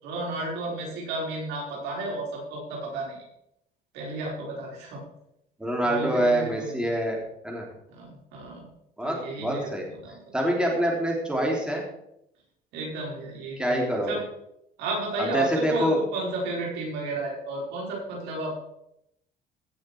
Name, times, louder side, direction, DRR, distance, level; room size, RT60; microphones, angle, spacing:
voice 1, 0.0-3.2 3.9-5.0 5.8-6.8 7.9-8.7 9.0-10.2 12.7-14.2 14.8-18.5, right 2 dB, 90° right, -2 dB, 4.7 m, -33 dB
voice 2, 5.6-7.7 9.0-9.9 10.3-11.8 13.6-14.2 15.2-16.0, right 1 dB, 5° right, -1 dB, 3.2 m, -26 dB
16.0 x 6.4 x 4.6 m, 0.77 s
cardioid pair, 110°, 17 cm